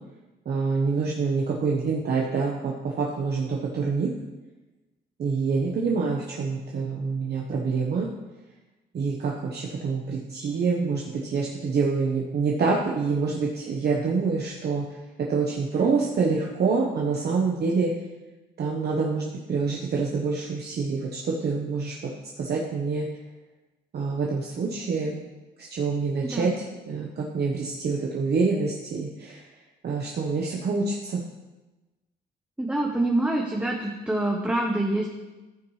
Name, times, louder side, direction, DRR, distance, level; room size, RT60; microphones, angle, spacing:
voice 1, 0.4-4.1 5.2-8.1 8.9-14.8 15.2-17.9 18.6-22.1 22.4-23.1 23.9-25.2 25.6-29.4 29.8-31.2, right 4 dB, 55° right, -2 dB, 1.1 m, -26 dB
voice 2, 32.6-35.1, right 1 dB, 5° right, 0 dB, 1.0 m, -25 dB
14.0 x 6.0 x 3.2 m, 1.1 s
cardioid pair, 90°, 20 cm